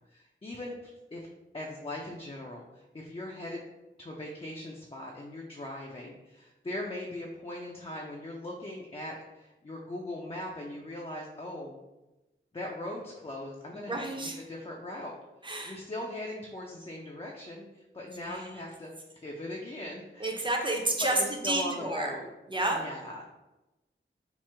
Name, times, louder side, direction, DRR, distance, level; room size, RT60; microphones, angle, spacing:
voice 1, 0.1-1.3 1.5-3.6 4.0-11.8 12.5-15.1 15.6-20.4 21.0-22.3 22.7-23.2, left 1 dB, 25° left, -2 dB, 0.4 m, -40 dB
voice 2, 13.9-14.4 15.4-15.7 18.2-18.4 20.2-21.2 21.4-22.1 22.5-22.8, right 2 dB, 25° right, 1 dB, 0.6 m, -30 dB
3.0 x 2.1 x 3.3 m, 1.0 s
wide cardioid pair, 40°, 21 cm